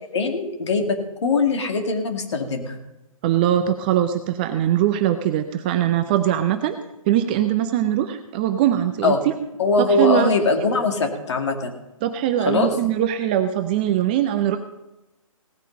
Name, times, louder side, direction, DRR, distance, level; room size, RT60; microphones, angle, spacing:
voice 1, 0.1-2.8 9.0-9.2 9.6-11.8 12.5-12.7, left 3 dB, 50° left, 4 dB, 2.3 m, -21 dB
voice 2, 3.2-6.8 7.1-9.3 9.8-10.3 12.0-14.6, right 11 dB, 15° right, 9 dB, 0.4 m, -21 dB
17.5 x 9.0 x 5.4 m, 0.96 s
figure-of-eight pair, 135°, 18 cm